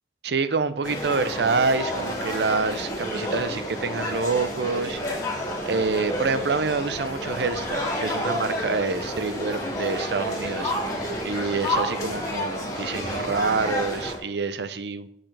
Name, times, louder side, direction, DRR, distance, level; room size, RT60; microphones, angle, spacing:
voice 1, 0.2-5.0 5.7-10.7 11.2-15.1, right 4 dB, 75° right, 13 dB, 0.6 m, -27 dB
sound 1, 0.8-14.2, left 1 dB, 20° left, 2.3 m, -30 dB
12.0 x 6.6 x 3.4 m, 0.76 s
head